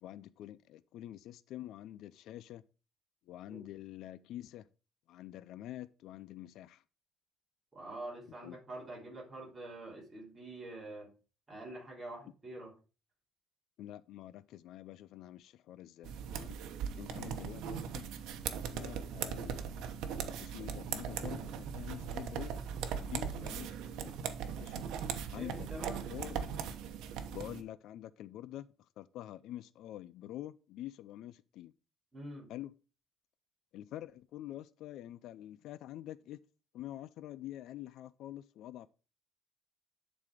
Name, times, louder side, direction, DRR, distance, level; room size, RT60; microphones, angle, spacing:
voice 1, 0.0-2.6 3.3-4.7 5.1-6.8 8.4-8.6 13.8-16.6 17.0-18.0 18.7-20.0 20.4-22.5 23.0-24.1 24.6-24.8 25.3-25.7 26.1-26.5 27.3-28.7 29.0-31.7 32.5-32.7 33.7-36.4 36.7-38.9, left 13 dB, 70° left, 0.4 m, -46 dB
voice 2, 7.7-11.1 11.5-12.7 17.1-17.3 25.3-26.0 32.1-32.5, right 2 dB, 15° right, 3.4 m, -46 dB
sound 1, 16.0-27.6, right 7 dB, 85° right, 1.0 m, -39 dB
10.5 x 4.1 x 4.8 m
cardioid pair, 175°, 0 cm